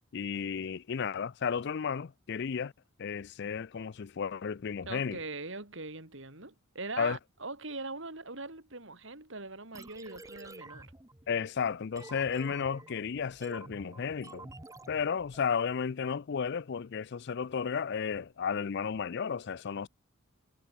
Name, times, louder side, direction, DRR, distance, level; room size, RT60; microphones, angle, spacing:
voice 1, 0.1-2.7 3.0-5.2 7.0-7.2 11.3-14.5 14.9-19.9, left 6 dB, 55° left, 0.4 m, -33 dB
voice 2, 4.9-10.9, right 3 dB, 65° right, 4.6 m, -41 dB
sound 1, 9.7-15.5, right 2 dB, 15° right, 1.2 m, -50 dB
head